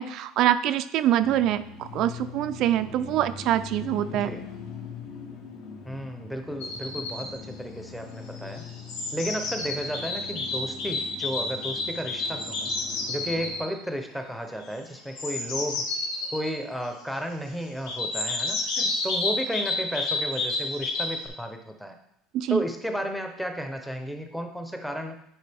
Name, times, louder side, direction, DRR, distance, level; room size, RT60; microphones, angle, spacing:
voice 1, 0.0-4.3 22.3-22.6, right 12 dB, 45° right, 11 dB, 0.3 m, -25 dB
sound 1, 1.2-13.6, left 4 dB, 55° left, 1.1 m, -42 dB
voice 2, 4.1-4.4 5.9-8.7 9.1-12.7 13.1-15.8 16.3-22.0 22.5-25.2, equal, ahead, 4 dB, 0.7 m, -33 dB
sound 2, 6.6-7.3 8.4-13.6 15.0-16.5 17.9-21.3, left 3 dB, 80° left, 2.1 m, -30 dB
9.6 x 5.0 x 3.5 m, 0.77 s
cardioid pair, 165°, 0 cm